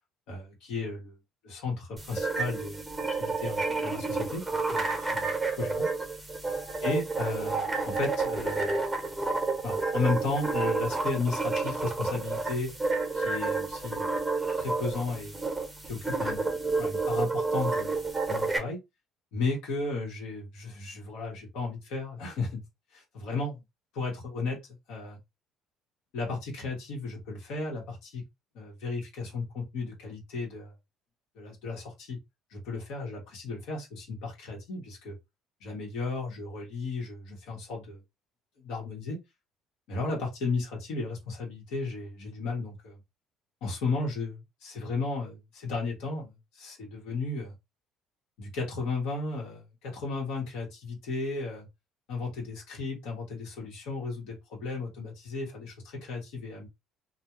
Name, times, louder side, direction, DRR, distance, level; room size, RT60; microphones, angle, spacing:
voice 1, 0.3-1.1 1.4-2.8 3.1-5.9 6.8-8.8 9.6-12.7 13.1-14.1 14.6-15.4 15.8-18.0 18.3-18.8 19.3-22.6 22.9-23.6 23.9-24.6 24.9-25.2 26.1-28.2 28.5-30.7 31.4-32.2 32.5-35.2 35.6-38.0 38.6-39.2 39.9-43.0 43.6-47.5 48.4-51.7 52.1-56.7, left 3 dB, 80° left, 1.0 m, -34 dB
sound 1, 2.0-18.6, right 3 dB, 10° right, 0.8 m, -30 dB
2.3 x 2.2 x 2.9 m
cardioid pair, 105°, 0 cm